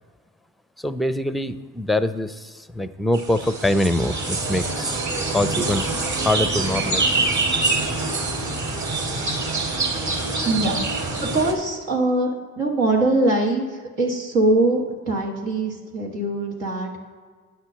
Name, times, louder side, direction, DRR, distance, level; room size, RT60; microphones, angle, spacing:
voice 1, 0.8-5.0 5.3-5.9 6.2-7.3, left 1 dB, ahead, 13 dB, 0.4 m, -24 dB
sound 1, 3.1-11.5, right 3 dB, 45° right, 1.8 m, -25 dB
voice 2, 10.4-17.0, right 2 dB, 90° right, -1 dB, 1.5 m, -23 dB
9.3 x 4.4 x 7.2 m, 1.5 s
hypercardioid pair, 50°, 40 cm